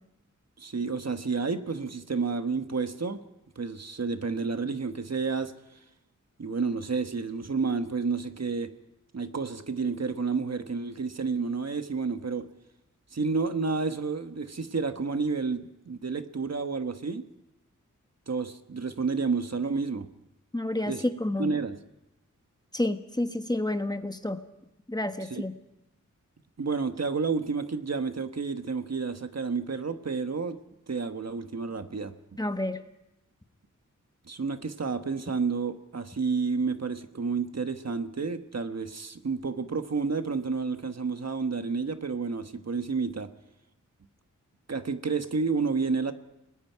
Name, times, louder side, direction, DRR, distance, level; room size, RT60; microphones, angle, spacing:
voice 1, 0.6-3.2 3.6-5.5 6.4-8.7 9.1-12.5 13.1-17.2 18.3-20.1 20.9-21.0 21.4-21.8 25.2-25.4 26.6-30.6 30.9-32.1 34.2-43.3 44.7-46.1, right 4 dB, 55° right, 8 dB, 1.3 m, -30 dB
voice 2, 20.5-20.9 21.2-21.5 22.7-24.4 24.9-25.5 32.4-32.8, left 1 dB, 10° left, 8 dB, 1.2 m, -29 dB
29.5 x 20.0 x 4.7 m, 0.91 s
wide cardioid pair, 70°, 32 cm